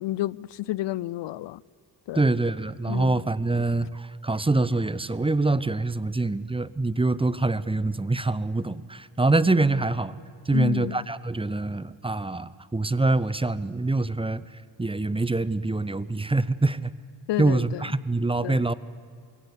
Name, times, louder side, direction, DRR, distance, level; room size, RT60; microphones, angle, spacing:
voice 1, 0.0-1.6 2.1-2.3 2.9-3.2 10.5-11.0 17.3-17.8 18.4-18.7, left 16 dB, 75° left, 0.5 m, -30 dB
voice 2, 2.1-10.2 10.5-14.4 14.8-16.9 17.4-18.7, right 2 dB, 15° right, 0.6 m, -25 dB
22.5 x 17.5 x 8.2 m
cardioid pair, 70°, 43 cm